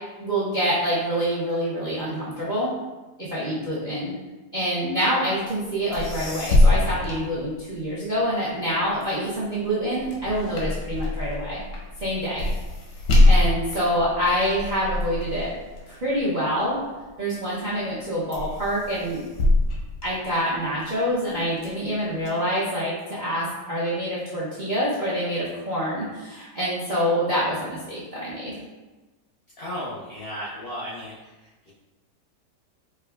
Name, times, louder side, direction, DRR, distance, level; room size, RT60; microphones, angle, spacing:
voice 1, 0.2-2.7 3.2-4.1 4.5-11.6 12.0-12.5 13.2-15.5 15.9-16.8 17.2-19.2 20.0-28.5, equal, 85° right, -10 dB, 0.4 m, -26 dB
sound 1, 5.6-5.7 5.9-8.0 8.5-17.1 17.6-18.0 18.3-20.8 21.3-22.3, left 1 dB, 85° left, 1.3 m, -24 dB
voice 2, 29.6-31.7, equal, 65° left, -7 dB, 0.5 m, -35 dB
4.7 x 2.2 x 2.2 m, 1.2 s
omnidirectional pair, 1.8 m